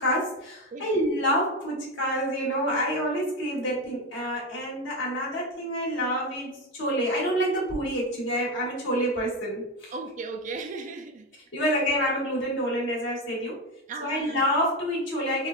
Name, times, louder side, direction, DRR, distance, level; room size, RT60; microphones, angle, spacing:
voice 1, 0.0-9.9 11.5-13.6 14.0-15.5, equal, 85° left, 1.3 m, -27 dB
voice 2, 0.7-1.0 9.9-11.3 11.6-11.8 13.9-14.4, right 4 dB, 40° right, 0.3 m, -37 dB
3.4 x 2.3 x 2.4 m
head